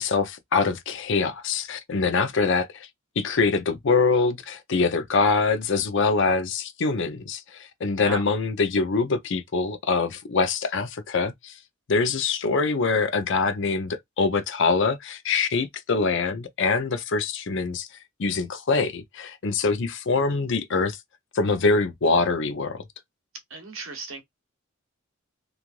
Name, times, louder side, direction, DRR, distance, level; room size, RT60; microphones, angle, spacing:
voice 1, 0.0-2.9 3.2-11.5 11.9-17.9 18.2-21.0 21.3-22.8, left 4 dB, 65° left, 0.6 m, -24 dB
voice 2, 23.5-24.2, right 3 dB, 75° right, 1.0 m, -35 dB
3.1 x 2.5 x 2.4 m
head